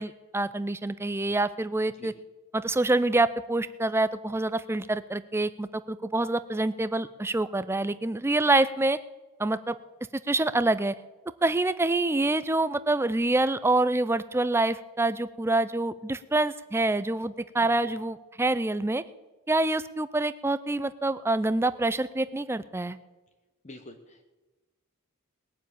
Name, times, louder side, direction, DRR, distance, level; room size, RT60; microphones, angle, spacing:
voice 1, 0.0-2.1 2.5-9.0 9.4-9.8 10.3-10.9 11.4-19.0 19.5-23.0, right 2 dB, 10° right, 14 dB, 0.4 m, -26 dB
voice 2, 23.6-24.2, left 1 dB, 30° left, 6 dB, 1.0 m, -46 dB
20.0 x 7.4 x 8.6 m, 1.2 s
head